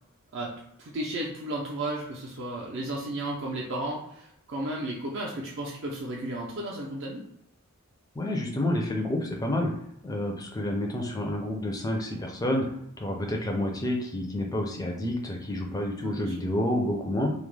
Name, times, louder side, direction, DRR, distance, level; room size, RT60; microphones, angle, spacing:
voice 1, 0.3-7.2 16.0-16.4, right 1 dB, 60° right, -3 dB, 0.4 m, -34 dB
voice 2, 8.2-9.7 10.0-12.7 13.0-17.3, left 1 dB, 15° left, 1 dB, 0.4 m, -29 dB
2.3 x 2.0 x 3.1 m, 0.75 s
head